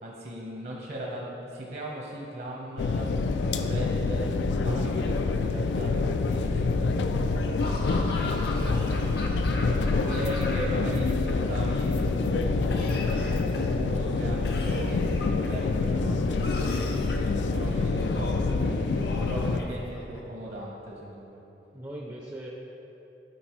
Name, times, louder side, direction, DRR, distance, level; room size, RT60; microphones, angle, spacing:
voice 1, 0.0-4.3 4.6-9.5 10.0-21.4, right 1 dB, 60° right, -3 dB, 1.0 m, -38 dB
sound 1, 2.8-19.6, left 3 dB, 85° left, 0.4 m, -26 dB
Laughter / Cough, 7.6-10.9 11.2-12.0 12.7-13.8 14.4-15.6 16.4-17.3 18.0-18.6 19.0-20.2, left 2 dB, 60° left, 0.7 m, -39 dB
voice 2, 9.4-9.9 19.0-19.7 21.7-22.5, right 1 dB, 15° right, -3 dB, 0.5 m, -42 dB
12.5 x 4.3 x 3.1 m, 3.0 s
head